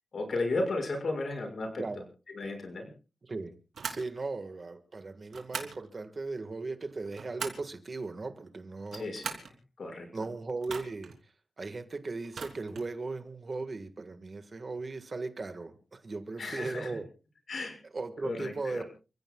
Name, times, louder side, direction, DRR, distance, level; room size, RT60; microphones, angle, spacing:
voice 1, 0.1-1.8 2.3-2.9 8.9-9.3 9.8-10.1 16.4-16.9 17.5-17.8 18.2-18.8, left 2 dB, 55° left, 5.9 m, -34 dB
voice 2, 3.2-3.6 3.9-9.1 10.1-11.1 11.6-17.1 17.9-18.8, right 3 dB, 40° right, 1.6 m, -37 dB
sound 1, 3.7-4.1 5.3-5.8 6.9-7.7 8.8-9.5 10.6-11.2 12.2-12.9, right 5 dB, 75° right, 3.1 m, -40 dB
29.5 x 16.0 x 2.3 m
wide cardioid pair, 125°, 0 cm